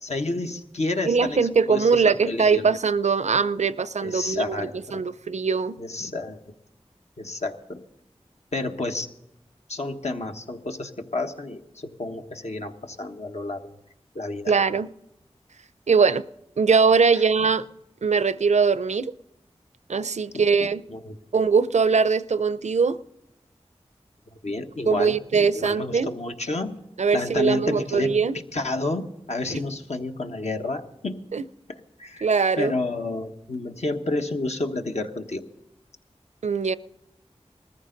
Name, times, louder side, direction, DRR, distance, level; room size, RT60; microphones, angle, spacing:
voice 1, 0.0-1.4 1.7-2.7 4.0-5.1 5.8-6.4 7.2-7.8 8.5-9.1 9.7-13.7 14.1-14.5 17.1-17.2 20.3-20.4 20.9-21.2 24.4-26.8 27.1-31.2 31.7-32.3 32.6-35.4, left 2 dB, 70° left, 1.3 m, -30 dB
voice 2, 1.0-5.8 14.5-14.9 15.9-16.2 16.6-17.7 18.0-19.1 19.9-20.8 21.3-23.0 24.9-26.1 27.0-28.4 31.3-31.4 32.2-32.7 36.4-36.7, right 5 dB, 80° right, 0.5 m, -21 dB
20.0 x 14.5 x 3.9 m
wide cardioid pair, 45°, 12 cm